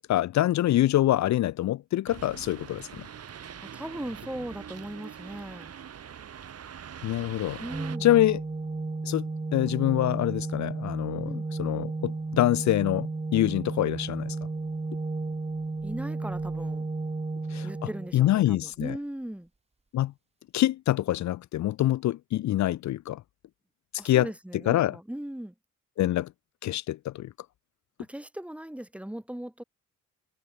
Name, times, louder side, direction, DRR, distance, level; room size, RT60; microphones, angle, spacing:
voice 1, 0.0-3.0 7.0-7.6 8.0-8.4 9.0-9.2 9.5-14.4 17.5-17.7 18.1-18.9 19.9-20.1 20.5-23.2 24.0-24.3 24.7-25.0 26.0-26.3 26.6-27.3, left 14 dB, 65° left, 0.8 m, -25 dB
sound 1, 2.1-8.0, right 8 dB, 55° right, 3.7 m, -43 dB
voice 2, 3.7-5.7 7.6-8.1 11.3-11.5 15.8-16.9 17.6-19.5 24.0-25.5 28.0-29.6, right 1 dB, 5° right, 4.2 m, -38 dB
Organ, 7.7-18.6, right 3 dB, 20° right, 3.9 m, -33 dB
cardioid pair, 90°, 30 cm